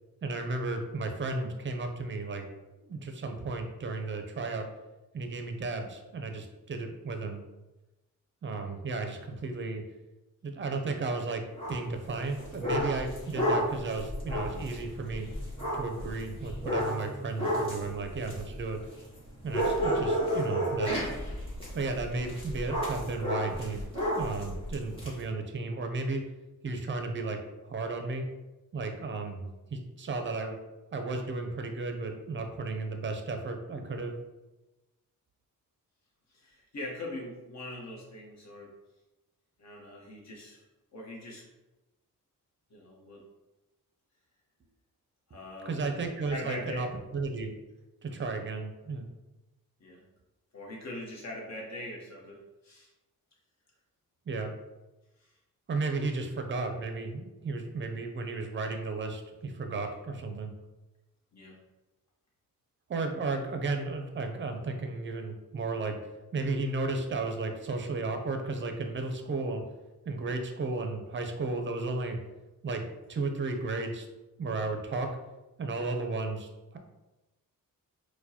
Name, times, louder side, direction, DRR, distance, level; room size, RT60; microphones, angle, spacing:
voice 1, 0.2-2.5 2.8-4.7 5.1-7.4 8.4-9.8 10.4-11.4 11.7-15.3 15.7-18.8 19.4-21.0 21.7-23.8 24.2-26.2 26.6-27.4 27.6-28.3 28.7-30.6 30.9-34.1 45.7-46.9 47.1-47.5 48.0-49.0 54.3-54.5 55.7-60.5 62.9-66.0 66.3-69.6 70.1-72.2 72.6-72.8 73.1-74.1 74.4-75.1 75.6-76.8, right 3 dB, 35° right, 5 dB, 0.5 m, -34 dB
sound 1, 11.6-11.9 12.3-19.2 19.5-25.1, equal, 15° left, 1.5 m, -32 dB
voice 2, 36.3-38.7 39.6-40.6 40.9-41.5 42.7-43.2 45.3-45.9 46.3-46.9 49.8-50.0 50.5-52.9 55.2-55.3 61.3-61.6, left 1 dB, 50° left, -1 dB, 1.0 m, -42 dB
4.4 x 2.2 x 2.8 m, 1.0 s
cardioid pair, 105°, 35 cm